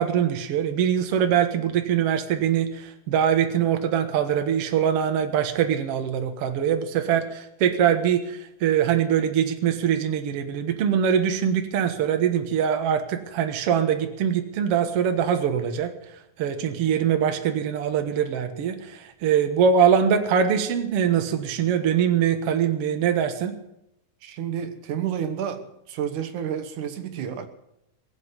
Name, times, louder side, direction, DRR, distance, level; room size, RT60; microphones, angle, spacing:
voice 1, 0.0-15.9 16.4-23.5, right 8 dB, 55° right, 7 dB, 2.0 m, -23 dB
voice 2, 24.2-27.5, right 8 dB, 75° right, 9 dB, 2.6 m, -30 dB
21.0 x 8.0 x 8.0 m, 0.82 s
omnidirectional pair, 3.6 m